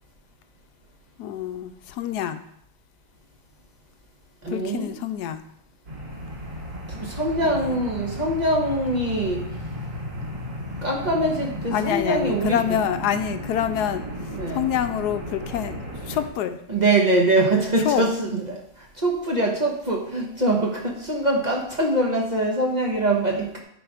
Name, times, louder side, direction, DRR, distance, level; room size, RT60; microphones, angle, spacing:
voice 1, 1.2-2.4 4.5-5.4 7.4-7.8 11.7-16.6 17.8-18.1, left 9 dB, 80° left, 10 dB, 1.1 m, -27 dB
voice 2, 4.4-4.9 6.9-9.4 10.8-12.6 14.4-14.7 16.7-23.6, right 2 dB, 30° right, -1 dB, 1.1 m, -23 dB
sound 1, 5.8-16.3, equal, 70° right, 2.4 m, -34 dB
10.0 x 4.1 x 4.9 m, 0.71 s
omnidirectional pair, 1.7 m